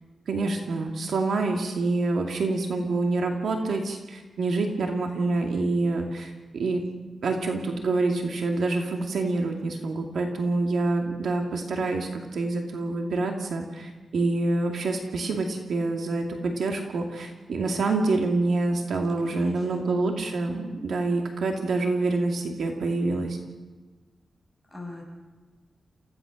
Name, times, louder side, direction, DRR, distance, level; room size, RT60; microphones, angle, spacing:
voice 1, 0.3-6.8 7.2-23.4, right 3 dB, 75° right, 3 dB, 2.4 m, -27 dB
voice 2, 19.2-19.6 24.7-25.0, left 2 dB, 5° right, -1 dB, 7.3 m, -40 dB
28.5 x 16.0 x 6.4 m, 1.3 s
wide cardioid pair, 130°, 0 cm